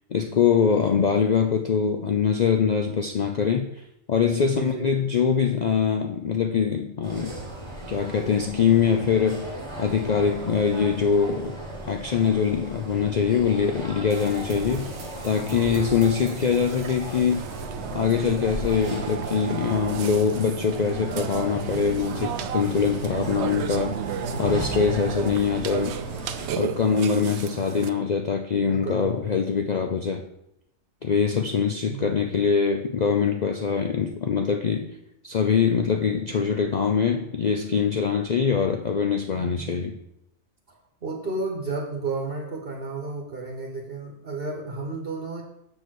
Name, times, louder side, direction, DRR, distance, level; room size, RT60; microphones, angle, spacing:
voice 1, 0.1-7.3 7.9-9.5 9.8-11.6 11.9-14.9 15.2-17.5 17.9-23.9 24.4-25.9 26.5-30.2 31.0-34.9 35.2-40.0, left 6 dB, 75° left, 4 dB, 0.4 m, -23 dB
voice 2, 4.5-4.9 15.7-15.9 24.2-25.2 28.6-29.3 31.9-32.2 39.3-39.8 40.7-45.4, right 3 dB, 45° right, 1 dB, 1.2 m, -33 dB
sound 1, 7.0-26.5, right 1 dB, 20° right, 1.3 m, -37 dB
sound 2, 14.1-18.3, right 4 dB, 85° right, 1.4 m, -40 dB
Burping eructation, 17.3-27.9, right 9 dB, 65° right, 0.7 m, -33 dB
6.8 x 4.8 x 6.2 m, 0.81 s
omnidirectional pair, 1.4 m